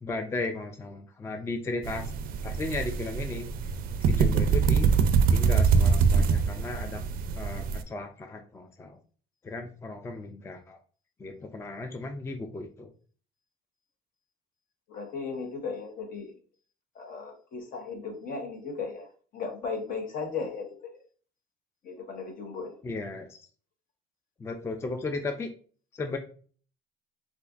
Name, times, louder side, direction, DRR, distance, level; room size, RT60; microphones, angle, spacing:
voice 1, 0.0-2.1 2.4-3.5 4.0-4.9 5.3-7.0 7.3-9.0 9.4-10.8 11.2-12.9 22.8-23.3 24.4-25.5 25.9-26.2, left 3 dB, 15° left, 5 dB, 0.3 m, -35 dB
sound 1, 1.8-7.8, right 5 dB, 60° right, 0.4 m, -24 dB
voice 2, 14.9-16.3 16.9-21.0 21.8-22.8, left 4 dB, 55° left, 4 dB, 0.9 m, -36 dB
3.9 x 2.5 x 2.4 m, 0.43 s
cardioid pair, 110°, 17 cm